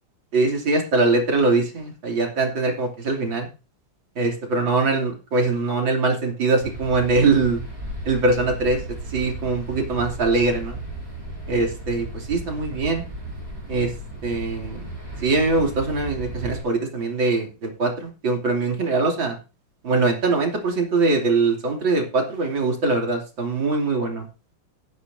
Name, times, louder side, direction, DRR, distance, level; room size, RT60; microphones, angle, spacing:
voice 1, 0.3-3.5 4.2-7.6 8.1-8.8 9.1-10.8 11.5-13.0 13.7-13.9 14.2-14.9 15.2-19.4 19.8-24.3, right 3 dB, 65° right, 2 dB, 3.6 m, -22 dB
sound 1, 6.6-16.6, right 2 dB, 10° right, 6.1 m, -35 dB
18.5 x 9.6 x 2.7 m, 0.32 s
omnidirectional pair, 2.3 m